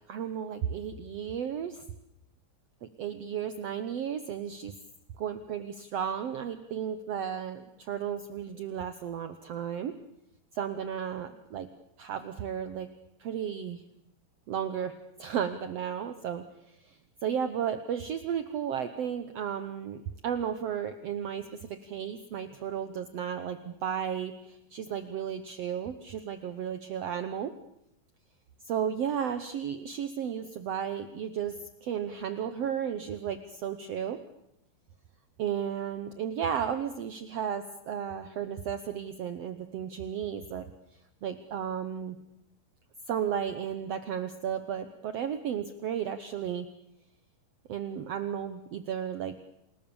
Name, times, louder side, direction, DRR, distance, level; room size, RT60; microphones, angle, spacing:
voice 1, 0.1-1.8 3.0-4.7 5.2-9.9 10.5-11.7 12.0-12.9 13.2-13.8 14.5-27.5 28.6-34.2 35.4-40.7 41.2-42.2 43.1-46.7 47.7-49.4, right 8 dB, 75° right, 10 dB, 1.4 m, -34 dB
29.0 x 20.5 x 7.1 m, 0.80 s
omnidirectional pair, 4.4 m